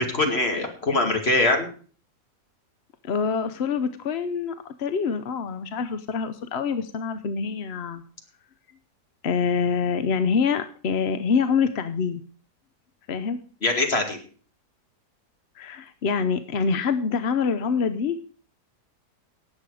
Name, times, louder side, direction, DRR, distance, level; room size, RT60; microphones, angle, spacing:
voice 1, 0.0-1.7 13.6-14.2, left 2 dB, 35° left, 3 dB, 2.5 m, -23 dB
voice 2, 3.1-4.5 4.8-8.0 9.2-12.2 13.1-13.4 15.6-18.2, left 5 dB, 55° left, 10 dB, 0.7 m, -25 dB
18.0 x 7.6 x 4.9 m, 0.42 s
omnidirectional pair, 1.8 m